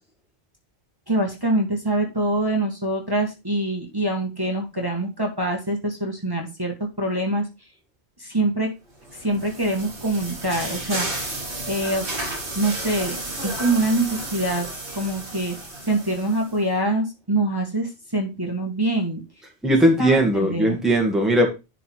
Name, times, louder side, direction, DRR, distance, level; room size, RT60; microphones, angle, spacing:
voice 1, 1.1-7.5 8.2-8.7 9.1-11.1 11.6-12.1 12.5-13.2 13.4-14.7 14.9-19.2 20.0-20.8, right 1 dB, 20° right, 1.7 m, -24 dB
sound 1, 9.0-16.6, right 2 dB, 85° right, 2.6 m, -32 dB
voice 2, 19.6-21.5, right 1 dB, ahead, 1.7 m, -18 dB
11.0 x 4.1 x 4.6 m
omnidirectional pair, 1.1 m